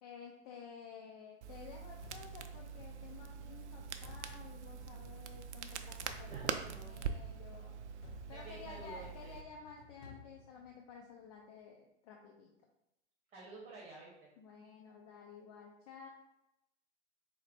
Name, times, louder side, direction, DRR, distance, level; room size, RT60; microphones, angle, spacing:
voice 1, 0.0-7.7 8.3-12.5 14.4-16.1, left 6 dB, 35° left, 0 dB, 0.4 m, -53 dB
Crackle, 1.4-9.4, right 7 dB, 75° right, 0.5 m, -44 dB
sound 1, 2.0-11.2, left 4 dB, 60° left, 0.9 m, -58 dB
voice 2, 6.2-7.0 8.3-9.4 13.3-14.3, right 2 dB, 15° right, -4 dB, 1.1 m, -52 dB
4.0 x 2.1 x 4.2 m, 0.86 s
hypercardioid pair, 120°, 35 cm